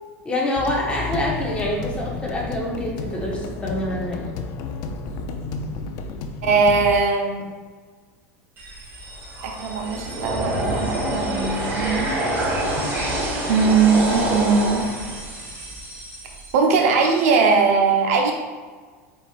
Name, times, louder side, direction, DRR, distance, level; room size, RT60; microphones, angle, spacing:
voice 1, 0.2-4.3, left 1 dB, 15° left, -2 dB, 0.9 m, -26 dB
sound 1, 0.6-7.0, left 4 dB, 50° left, 0.4 m, -31 dB
voice 2, 6.4-7.4 9.4-12.1 13.5-14.8 16.5-18.3, right 4 dB, 75° right, 2 dB, 0.8 m, -20 dB
sound 2, 8.6-16.5, right 1 dB, 25° right, 1.2 m, -27 dB
4.5 x 4.4 x 2.4 m, 1.5 s
supercardioid pair, 140°, 8 cm